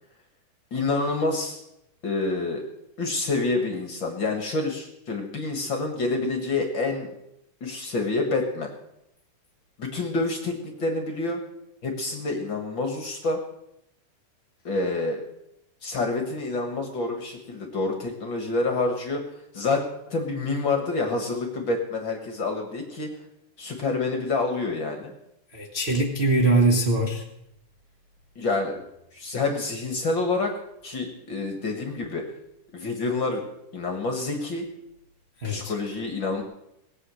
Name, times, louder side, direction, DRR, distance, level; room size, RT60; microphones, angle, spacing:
voice 1, 0.7-1.6 2.0-2.6 3.0-7.1 7.6-8.7 9.8-11.4 11.8-13.4 14.6-15.2 15.8-19.2 19.5-23.1 23.6-25.1 28.4-28.7 29.1-30.5 30.8-32.2 32.7-33.4 33.7-34.7 35.4-36.4, left 3 dB, 45° left, 4 dB, 1.9 m, -27 dB
voice 2, 25.5-27.2 35.4-35.7, right 2 dB, 30° right, -1 dB, 1.1 m, -22 dB
19.5 x 8.4 x 6.4 m, 0.81 s
omnidirectional pair, 3.6 m